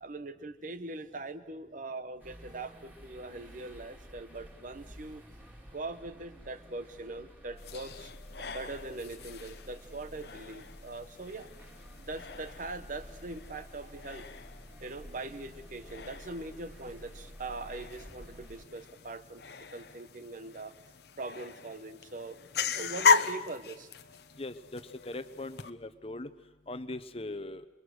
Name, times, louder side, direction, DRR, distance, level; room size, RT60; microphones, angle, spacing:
voice 1, 0.0-5.2 5.7-8.1 8.4-11.5 12.0-14.3 14.8-19.4 19.7-20.7 21.2-22.4 22.7-23.9, right 2 dB, 45° right, 11 dB, 1.0 m, -41 dB
sound 1, 2.2-18.6, equal, 10° right, 2.8 m, -51 dB
sound 2, 7.6-25.7, left 5 dB, 65° left, 0.9 m, -36 dB
voice 2, 24.4-26.3 26.7-27.6, left 2 dB, 35° left, 11 dB, 0.9 m, -40 dB
28.0 x 22.5 x 6.5 m, 1.0 s
head